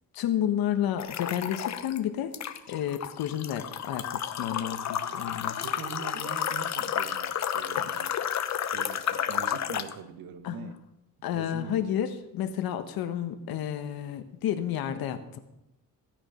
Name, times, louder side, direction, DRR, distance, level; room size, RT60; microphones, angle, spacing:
voice 1, 0.1-2.3 2.7-5.6 10.4-10.7 11.2-15.4, left 10 dB, 85° left, 8 dB, 1.5 m, -31 dB
sound 1, 1.0-2.0 2.3-9.9, left 9 dB, 50° left, 0.9 m, -31 dB
voice 2, 5.6-8.2 8.7-10.8 11.3-12.1, right 7 dB, 80° right, 10 dB, 1.3 m, -43 dB
15.5 x 9.1 x 5.7 m, 0.88 s
cardioid pair, 100°, 35 cm